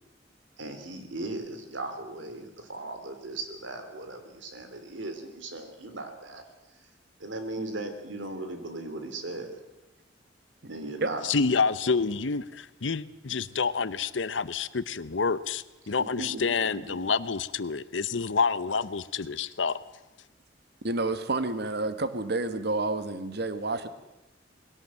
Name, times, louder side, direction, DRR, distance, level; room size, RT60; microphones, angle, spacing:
voice 1, 0.6-6.4 7.2-9.6 10.7-11.6 15.8-16.4, right 2 dB, 80° right, 7 dB, 3.3 m, -37 dB
voice 2, 11.2-19.8, left 5 dB, 75° left, 16 dB, 0.8 m, -28 dB
voice 3, 20.8-23.9, right 2 dB, 60° right, 11 dB, 1.4 m, -29 dB
20.5 x 17.5 x 7.6 m, 0.97 s
head